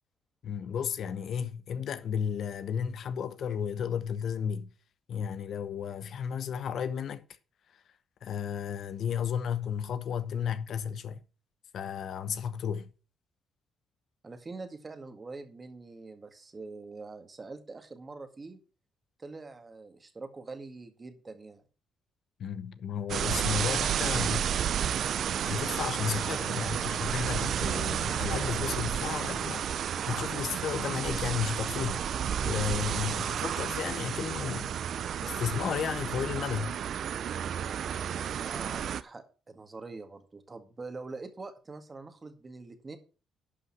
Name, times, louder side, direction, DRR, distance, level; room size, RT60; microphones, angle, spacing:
voice 1, 0.4-4.7 5.1-7.2 7.7-7.8 8.2-11.2 11.7-12.9 22.4-24.5 25.4-29.7 30.1-34.7 35.2-36.8, left 8 dB, 65° left, 0.8 m, -33 dB
voice 2, 14.2-18.6 19.2-21.6 38.4-43.0, right 3 dB, 25° right, 1.9 m, -44 dB
sound 1, 23.1-39.0, right 9 dB, 65° right, 0.6 m, -31 dB
11.5 x 5.6 x 5.9 m
cardioid pair, 105°, 0 cm